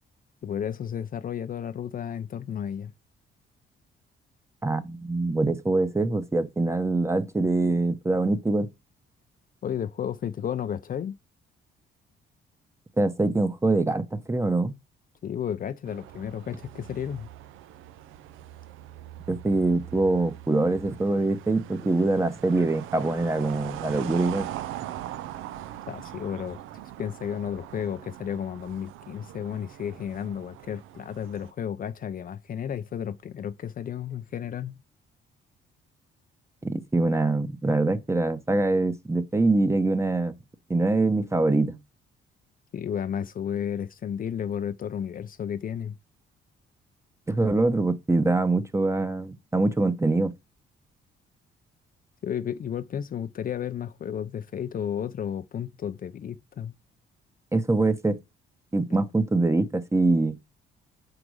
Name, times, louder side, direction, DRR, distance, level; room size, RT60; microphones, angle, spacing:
voice 1, 0.4-2.9 9.6-11.1 15.2-17.3 25.9-26.6 27.0-34.8 42.7-45.9 52.2-56.7, left 8 dB, 45° left, 0.5 m, -32 dB
voice 2, 4.6-8.7 13.0-14.7 19.3-24.5 36.6-40.4 40.7-41.8 47.3-50.3 57.5-58.2 58.7-60.4, right 2 dB, 15° right, 0.9 m, -24 dB
sound 1, 15.9-31.5, right 13 dB, 90° right, 0.5 m, -41 dB
5.1 x 4.9 x 6.2 m
cardioid pair, 90°, 20 cm